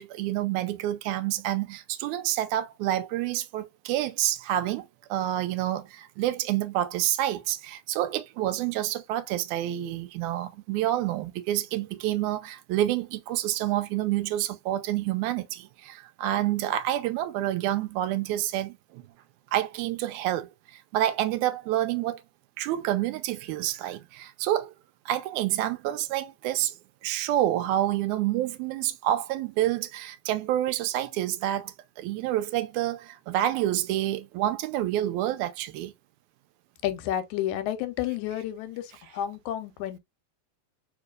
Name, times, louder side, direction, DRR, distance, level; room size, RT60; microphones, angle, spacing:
voice 1, 0.0-19.0 19.5-22.2 22.6-24.7 25.1-26.8 27.0-35.9, right 13 dB, 90° right, 2.0 m, -28 dB
voice 2, 36.8-40.0, left 12 dB, 85° left, 2.1 m, -31 dB
4.5 x 2.9 x 2.3 m
omnidirectional pair, 3.4 m